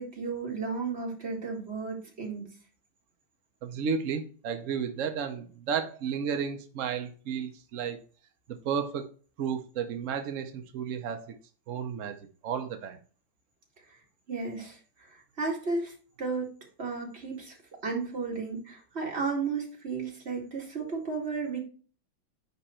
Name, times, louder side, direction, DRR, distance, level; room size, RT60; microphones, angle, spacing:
voice 1, 0.0-2.5 14.3-16.5 16.8-17.5 17.8-21.6, right 4 dB, 30° right, -1 dB, 2.1 m, -33 dB
voice 2, 3.6-8.0 8.6-9.1 9.4-11.4 11.7-12.2 12.4-13.0, right 7 dB, 75° right, 6 dB, 0.7 m, -32 dB
9.7 x 3.4 x 4.2 m, 0.40 s
omnidirectional pair, 2.2 m